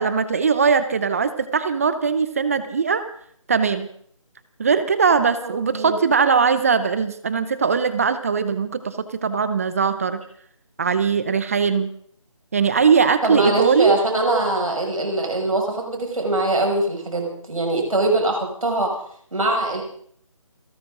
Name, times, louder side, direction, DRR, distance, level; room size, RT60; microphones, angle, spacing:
voice 1, 0.0-3.0 3.5-3.9 4.6-9.0 9.2-10.2 10.8-11.9 12.5-14.0, right 5 dB, 25° right, 13 dB, 0.8 m, -20 dB
voice 2, 5.4-6.0 13.2-18.9 19.3-19.8, right 2 dB, 80° right, 2 dB, 6.4 m, -22 dB
29.0 x 12.0 x 3.8 m, 0.62 s
figure-of-eight pair, 165°, 17 cm